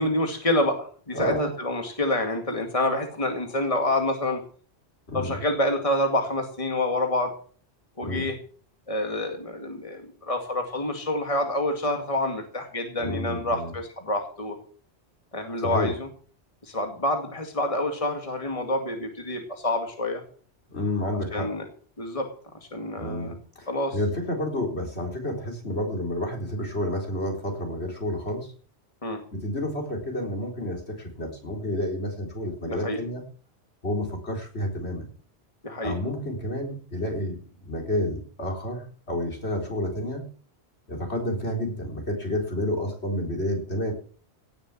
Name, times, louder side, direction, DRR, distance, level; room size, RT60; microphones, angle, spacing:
voice 1, 0.0-4.4 5.1-7.3 8.0-8.4 8.9-14.6 15.3-16.1 16.6-20.2 21.3-21.7 22.0-22.3 22.7-23.3 23.7-24.0 29.0-29.2 32.6-33.0 35.6-36.0, left 1 dB, 30° left, 4 dB, 2.3 m, -27 dB
voice 2, 1.1-1.5 5.1-5.4 8.0-8.3 13.0-13.7 15.6-15.9 20.7-21.5 23.0-28.5 29.3-33.2 33.8-35.1 35.8-40.2 40.9-43.9, left 1 dB, 80° left, 2 dB, 4.3 m, -30 dB
17.5 x 7.1 x 7.4 m, 0.44 s
omnidirectional pair, 1.1 m